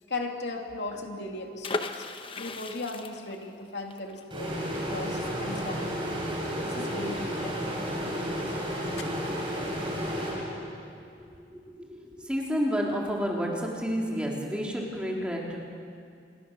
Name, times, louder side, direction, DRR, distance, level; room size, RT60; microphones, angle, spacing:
voice 1, 0.1-2.0 2.3-6.1 6.4-7.5 8.1-8.2 8.5-8.6, left 2 dB, 80° left, 2 dB, 2.7 m, -37 dB
sound 1, 1.6-7.3 7.5-7.6 7.9-8.2, left 3 dB, 30° left, 1.0 m, -38 dB
sound 2, 4.3-11.0, equal, 30° right, 6.9 m, -32 dB
voice 2, 11.4-11.8 12.0-15.6, equal, 5° right, -2 dB, 3.6 m, -30 dB
27.5 x 22.5 x 6.9 m, 2.3 s
head